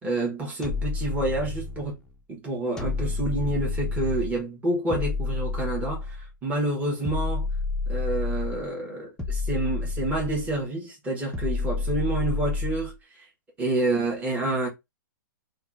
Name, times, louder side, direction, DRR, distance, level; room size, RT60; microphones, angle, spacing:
voice 1, 0.0-2.0 2.3-6.2 6.4-7.5 7.9-13.3 13.6-14.7, right 2 dB, 15° right, 1.1 m, -28 dB
sound 1, 0.6-1.9 2.8-4.4 4.9-6.3 7.0-8.7 9.2-10.6 11.3-12.9, left 3 dB, 5° left, 0.4 m, -29 dB
2.9 x 2.3 x 2.5 m
hypercardioid pair, 135°, 11 cm